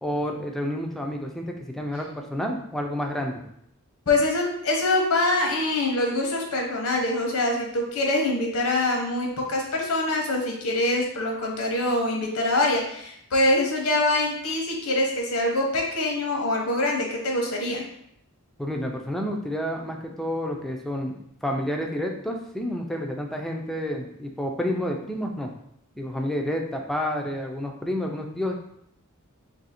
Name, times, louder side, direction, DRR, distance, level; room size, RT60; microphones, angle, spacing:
voice 1, 0.0-3.4 18.6-25.5 26.0-28.6, equal, ahead, 1 dB, 0.4 m, -29 dB
voice 2, 4.1-17.8, left 2 dB, 85° left, 0 dB, 0.9 m, -24 dB
2.7 x 2.6 x 4.2 m, 0.72 s
head